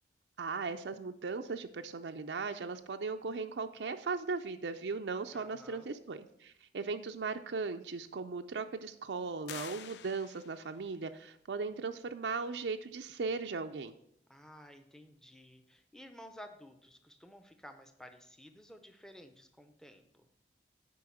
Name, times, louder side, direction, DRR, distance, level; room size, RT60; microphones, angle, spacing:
voice 1, 0.4-13.9, right 4 dB, 85° right, 7 dB, 0.5 m, -38 dB
voice 2, 5.3-5.9 14.3-20.3, equal, 5° left, 7 dB, 0.7 m, -54 dB
sound 1, 9.5-10.8, left 10 dB, 80° left, 0.4 m, -48 dB
8.5 x 5.2 x 6.3 m, 0.73 s
head